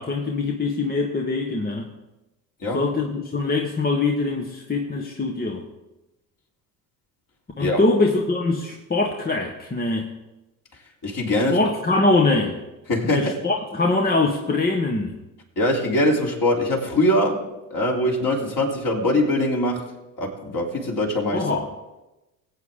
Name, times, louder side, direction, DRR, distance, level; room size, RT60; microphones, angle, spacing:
voice 1, 0.0-1.9 2.7-5.7 7.6-10.1 11.5-12.6 13.0-15.2 21.3-21.7, left 3 dB, 20° left, 2 dB, 1.2 m, -23 dB
voice 2, 11.0-11.6 12.9-13.3 15.6-17.4 17.7-19.9 20.2-21.5, left 1 dB, 40° left, -1 dB, 3.4 m, -22 dB
20.5 x 8.4 x 3.7 m, 1.0 s
hypercardioid pair, 70°, 50 cm